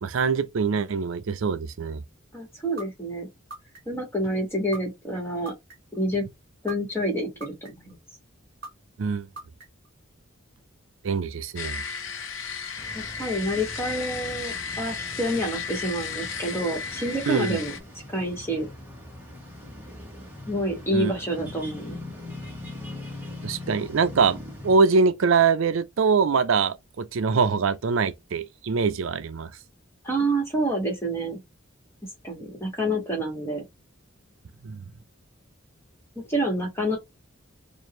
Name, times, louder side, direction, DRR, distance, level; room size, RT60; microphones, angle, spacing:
voice 1, 0.0-2.0 9.0-9.3 11.0-11.8 17.3-17.6 20.9-21.1 23.4-29.5 34.6-34.8, right 5 dB, 70° right, 0.4 m, -23 dB
voice 2, 2.3-3.3 3.8-5.5 5.9-6.3 6.6-7.9 12.9-17.7 18.1-18.7 20.5-22.0 30.0-31.4 32.2-33.6 36.3-37.0, right 1 dB, 10° left, 1.7 m, -28 dB
sound 1, 2.8-2.9 3.5-4.0 4.7-4.8 5.5-6.0 6.7-6.8 7.4-7.9 8.6-8.7 9.4-9.9, right 2 dB, 45° right, 2.2 m, -39 dB
sound 2, 11.5-17.8, left 6 dB, 70° left, 0.8 m, -34 dB
sound 3, 12.8-24.8, left 1 dB, 10° right, 1.3 m, -41 dB
4.5 x 2.6 x 3.1 m
head